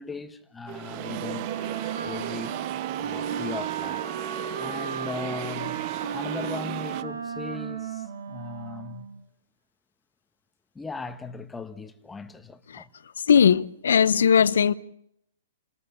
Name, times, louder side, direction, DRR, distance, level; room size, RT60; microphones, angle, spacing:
voice 1, 0.0-2.6 3.0-4.0 4.6-5.8 6.1-9.1 10.7-12.9, left 4 dB, 10° left, 1.3 m, -38 dB
sound 1, 0.7-7.0, right 15 dB, 40° right, 1.0 m, -36 dB
Wind instrument woodwind instrument, 1.0-9.2, right 7 dB, 75° right, 2.9 m, -34 dB
voice 2, 13.2-14.7, left 7 dB, 75° left, 0.9 m, -19 dB
29.5 x 13.5 x 8.7 m
hypercardioid pair, 125°, 0 cm